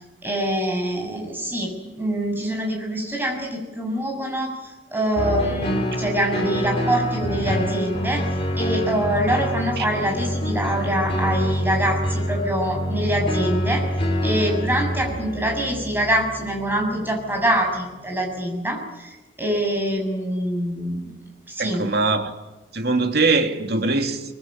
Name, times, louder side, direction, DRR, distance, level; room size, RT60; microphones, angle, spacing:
voice 1, 0.2-8.3 8.6-13.9 14.2-21.0 21.5-21.9, right 1 dB, 10° right, 6.8 m, -25 dB
sound 1, 5.2-17.6 18.2-18.3, equal, 30° left, 3.9 m, -26 dB
voice 2, 21.6-22.3 22.7-24.3, right 3 dB, 60° right, 2.5 m, -22 dB
24.5 x 22.0 x 8.7 m
head